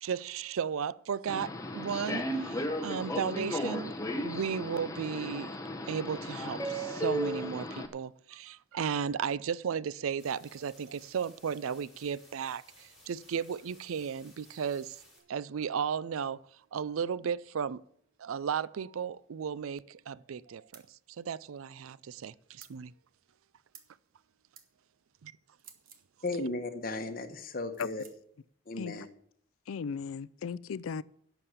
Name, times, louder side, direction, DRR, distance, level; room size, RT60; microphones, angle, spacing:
voice 1, 0.0-5.6 5.9-15.0 15.3-16.4 16.7-17.8 18.2-20.8 21.2-22.9 25.2-25.3, right 7 dB, 85° right, 0.4 m, -35 dB
Subway metro underground, 1.3-7.9, equal, 15° left, 1.0 m, -35 dB
sound 1, 10.2-15.2, left 1 dB, 5° right, 5.4 m, -59 dB
sound 2, 20.7-20.9 22.6-22.8 23.7-24.0 24.5-24.7 25.6-26.1 27.7-28.2, right 8 dB, 45° right, 1.4 m, -54 dB
voice 2, 26.2-28.0 28.7-29.1, left 2 dB, 45° left, 1.3 m, -35 dB
voice 3, 29.7-31.0, left 6 dB, 80° left, 0.4 m, -37 dB
11.5 x 7.0 x 8.0 m
head